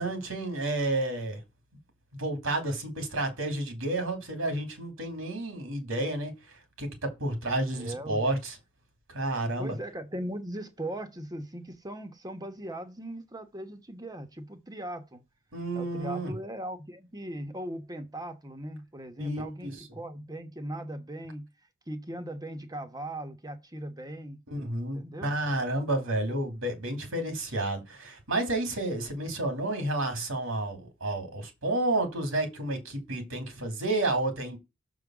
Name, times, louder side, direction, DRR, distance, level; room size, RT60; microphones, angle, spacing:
voice 1, 0.0-1.4 2.1-6.3 6.8-8.6 9.1-9.7 15.5-16.3 19.2-19.8 24.5-34.6, right 2 dB, 75° right, 2.5 m, -31 dB
voice 2, 7.7-8.2 9.6-15.2 15.7-21.5 21.9-24.4 24.9-25.3, right 1 dB, 20° right, 1.2 m, -39 dB
6.7 x 3.9 x 6.1 m
head